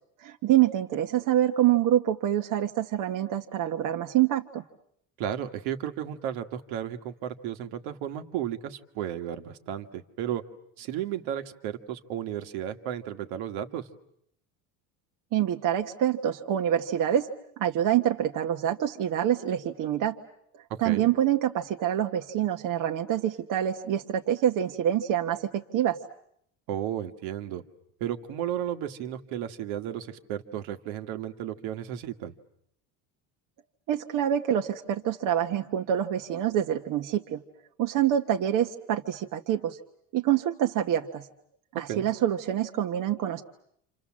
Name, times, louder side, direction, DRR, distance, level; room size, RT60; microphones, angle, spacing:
voice 1, 0.2-4.6 15.3-17.3 17.6-20.2 20.8-26.0 33.9-37.4 37.8-39.8 40.1-41.2 41.8-43.4, right 11 dB, 55° right, 4 dB, 1.2 m, -26 dB
voice 2, 5.2-10.4 10.8-13.9 20.7-21.1 26.7-27.6 28.0-32.3 41.9-42.1, right 10 dB, 80° right, 7 dB, 1.9 m, -34 dB
29.5 x 27.0 x 7.5 m, 0.72 s
cardioid pair, 145°, 38 cm